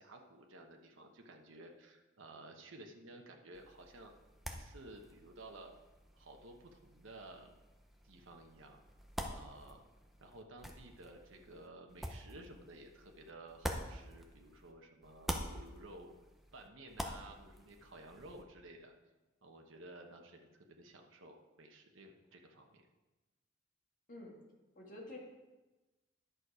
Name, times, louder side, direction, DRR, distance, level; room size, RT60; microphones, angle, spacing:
voice 1, 0.0-4.1 4.5-5.7 6.1-7.6 8.0-8.8 9.3-9.8 10.2-16.1 16.5-18.9 19.4-22.8, right 2 dB, 70° right, 3 dB, 1.1 m, -54 dB
sound 1, 3.5-14.7 15.0-18.4, equal, ahead, 0.7 m, -47 dB
voice 2, 24.8-25.2, left 2 dB, 40° left, -2 dB, 1.9 m, -49 dB
10.5 x 6.6 x 4.8 m, 1.1 s
head